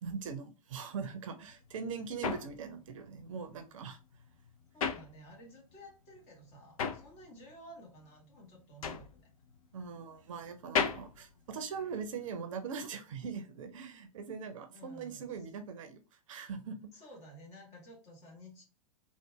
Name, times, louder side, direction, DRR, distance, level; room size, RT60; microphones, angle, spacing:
voice 1, 0.0-4.0 9.7-16.0 16.3-16.9, right 5 dB, 55° right, 7 dB, 0.7 m, -41 dB
sound 1, 1.5-5.8 6.0-12.3, left 6 dB, 65° left, 0.6 m, -38 dB
voice 2, 4.7-9.3 14.7-15.5 16.9-18.6, equal, 35° left, 0 dB, 1.7 m, -53 dB
3.8 x 2.5 x 3.5 m, 0.34 s
figure-of-eight pair, 100°, 19 cm